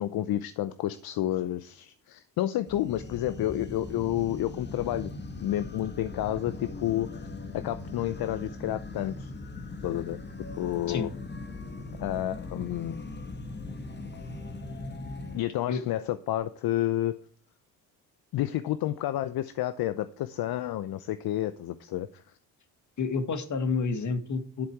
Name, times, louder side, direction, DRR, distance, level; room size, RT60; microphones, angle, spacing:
voice 1, 0.0-5.1 5.4-7.3 7.5-9.3 9.8-10.2 10.6-11.1 12.0-13.0 15.3-17.1 18.3-22.2, left 13 dB, 70° left, 13 dB, 0.8 m, -30 dB
sound 1, 2.7-15.4, left 3 dB, 25° left, 1.6 m, -40 dB
voice 2, 23.0-24.7, left 4 dB, 50° left, 10 dB, 1.9 m, -29 dB
11.0 x 7.9 x 4.7 m, 0.43 s
cardioid pair, 85°, 38 cm